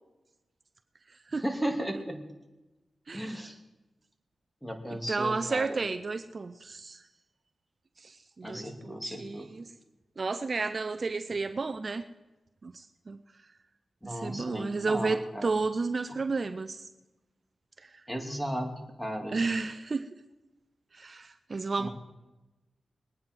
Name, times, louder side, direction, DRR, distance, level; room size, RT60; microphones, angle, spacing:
voice 1, 1.3-2.2 3.1-3.6 4.6-5.8 8.4-9.5 14.0-15.5 18.1-18.7 19.0-19.4 21.8-21.9, equal, 5° left, 4 dB, 2.7 m, -35 dB
voice 2, 3.1-3.4 4.9-7.0 8.0-9.7 10.2-12.0 12.6-13.2 14.0-16.9 19.3-20.1 20.9-21.9, right 4 dB, 55° right, 9 dB, 0.6 m, -32 dB
21.0 x 9.5 x 4.6 m, 1.1 s
supercardioid pair, 40°, 0 cm